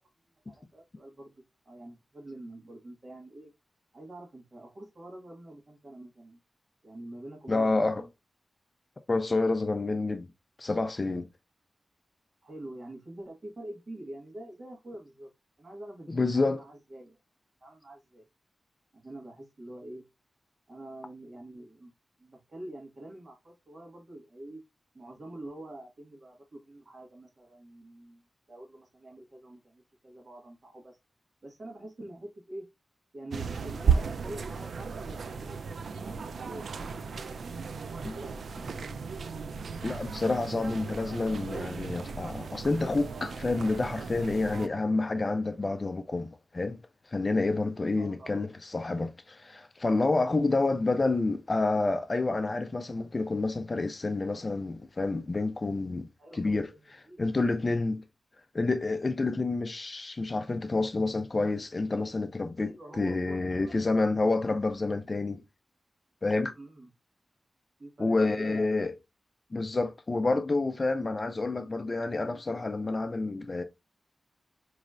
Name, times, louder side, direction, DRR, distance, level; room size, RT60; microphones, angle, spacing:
voice 1, 0.5-3.5 3.9-6.4 6.8-8.1 12.4-15.3 15.6-17.2 17.6-18.3 18.9-20.0 20.7-21.9 22.2-24.6 24.9-28.2 28.5-31.0 31.4-32.6 33.1-36.9 37.3-37.6 38.1-38.9 47.9-48.4 56.2-57.2 62.6-64.1 66.5-66.9 67.8-68.6, right 1 dB, 45° right, 1.7 m, -46 dB
voice 2, 7.5-8.0 9.1-10.3 10.6-11.3 16.1-16.6 38.0-38.2 39.8-46.8 47.1-56.1 56.3-56.7 57.2-58.0 58.5-65.4 66.2-66.5 68.0-68.9 69.5-73.6, left 3 dB, 35° left, 0.4 m, -28 dB
sound 1, 33.3-44.7, right 6 dB, 85° right, 0.3 m, -34 dB
5.0 x 3.1 x 2.5 m
wide cardioid pair, 130°, 0 cm